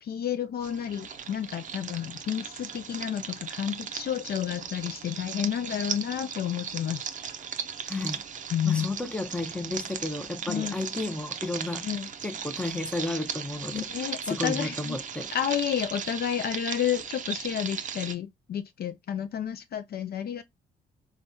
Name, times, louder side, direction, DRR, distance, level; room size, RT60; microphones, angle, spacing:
voice 1, 0.0-7.4 8.5-8.9 10.4-10.8 11.8-12.1 13.7-15.0 15.3-20.4, left 9 dB, 50° left, 0.4 m, -31 dB
sound 1, 0.6-18.1, right 7 dB, 40° right, 0.5 m, -37 dB
voice 2, 7.9-8.2 8.6-11.8 12.2-15.3, left 2 dB, 5° left, 0.6 m, -33 dB
3.4 x 2.4 x 2.6 m
cardioid pair, 90°, 20 cm